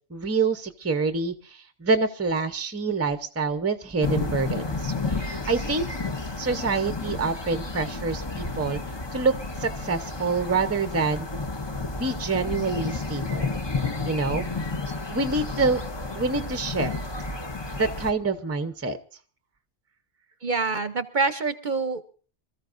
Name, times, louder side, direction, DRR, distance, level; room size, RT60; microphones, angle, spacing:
voice 1, 0.1-5.8 6.4-8.8 9.1-9.3 9.6-11.3 11.9-13.6 14.0-14.4 15.1-15.8 16.1-16.9 17.7-19.0, right 4 dB, 15° right, 10 dB, 0.7 m, -26 dB
sound 1, 4.0-18.1, left 3 dB, 25° left, 0.8 m, -31 dB
voice 2, 20.4-22.0, right 4 dB, 45° right, 11 dB, 0.9 m, -26 dB
26.5 x 14.0 x 2.6 m, 0.39 s
omnidirectional pair, 1.2 m